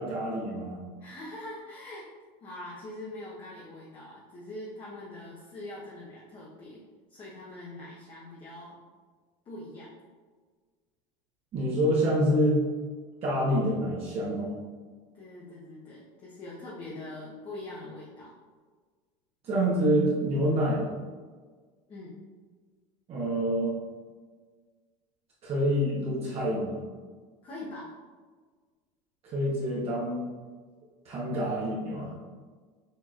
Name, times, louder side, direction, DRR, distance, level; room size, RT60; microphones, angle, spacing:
voice 1, 0.0-0.8 11.5-12.6 13.2-14.5 19.4-20.9 23.1-23.7 25.4-26.8 29.2-30.3 31.0-32.1, equal, 40° right, -6 dB, 1.2 m, -27 dB
voice 2, 1.0-2.1 2.4-6.8 7.1-8.8 9.4-9.9 15.1-18.3 21.9-22.2 27.4-28.0, left 1 dB, 30° left, -6 dB, 1.1 m, -43 dB
6.5 x 2.9 x 2.5 m, 1.5 s
supercardioid pair, 115°, 16 cm